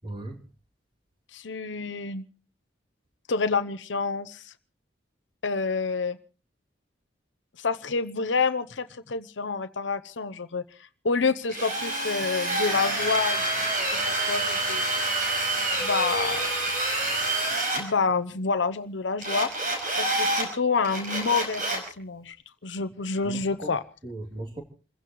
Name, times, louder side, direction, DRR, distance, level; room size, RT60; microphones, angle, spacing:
voice 1, 0.0-0.4 22.7-22.8 23.2-23.8 24.0-24.6, right 1 dB, 25° right, 3.1 m, -37 dB
voice 2, 1.3-2.2 3.3-4.5 5.4-6.2 7.6-10.6 11.0-13.7 14.1-14.9 15.8-16.5 17.7-19.5 20.0-22.4 22.6-23.8, left 4 dB, 75° left, 0.8 m, -28 dB
Drill, 11.5-17.8 19.2-20.5 20.8-21.9, right 2 dB, 45° right, 5.5 m, -27 dB
28.5 x 16.0 x 3.1 m
head